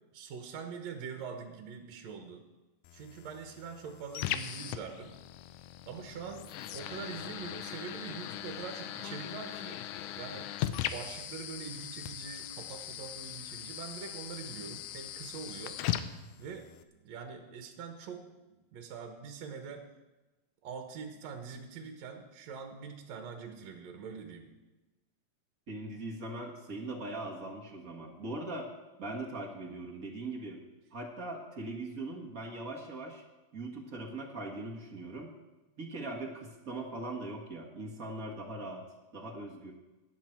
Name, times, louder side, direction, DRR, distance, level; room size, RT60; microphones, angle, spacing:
voice 1, 0.1-2.4 2.9-5.2 5.9-9.8 10.2-10.5 10.9-15.8 16.4-18.3 18.7-19.9 20.6-24.5, right 6 dB, 65° right, 4 dB, 2.2 m, -44 dB
sound 1, 2.8-16.8, left 11 dB, 80° left, 2.1 m, -39 dB
voice 2, 25.7-28.7 29.0-30.6 30.9-33.2 33.5-35.3 35.8-38.8 39.1-39.7, right 2 dB, 40° right, 0 dB, 1.4 m, -40 dB
16.5 x 10.5 x 4.5 m, 1.1 s
omnidirectional pair, 3.6 m